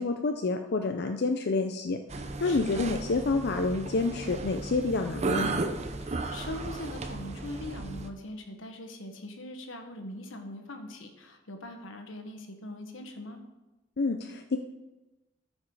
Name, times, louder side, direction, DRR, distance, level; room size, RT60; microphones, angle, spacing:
voice 1, 0.0-5.5 14.0-14.6, left 3 dB, 60° left, 5 dB, 0.5 m, -28 dB
sound 1, 2.1-8.1, right 3 dB, 35° right, 0.7 m, -34 dB
voice 2, 2.4-2.8 6.0-13.4, left 1 dB, 90° left, 5 dB, 1.3 m, -41 dB
13.5 x 5.3 x 4.8 m, 1.0 s
head